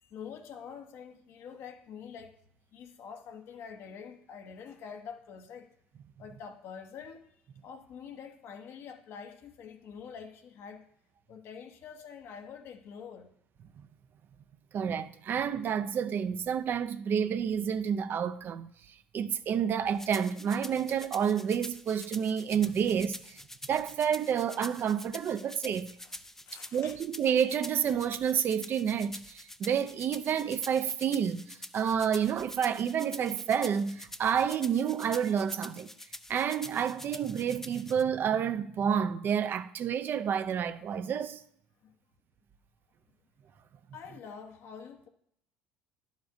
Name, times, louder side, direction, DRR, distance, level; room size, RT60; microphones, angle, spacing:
voice 1, 0.0-2.4 2.7-5.7 6.2-7.3 7.6-10.9 11.3-13.3 26.0-26.1 26.4-27.0 41.8-42.0 43.9-45.1, left 7 dB, 55° left, 0.9 m, -46 dB
voice 2, 14.7-18.7 19.1-23.4 23.7-25.9 26.7-35.9 36.3-41.4, right 8 dB, 45° right, 0.5 m, -29 dB
sound 1, 20.0-38.0, left 1 dB, 10° left, 0.5 m, -46 dB
11.0 x 7.1 x 2.6 m
hypercardioid pair, 75°, 5 cm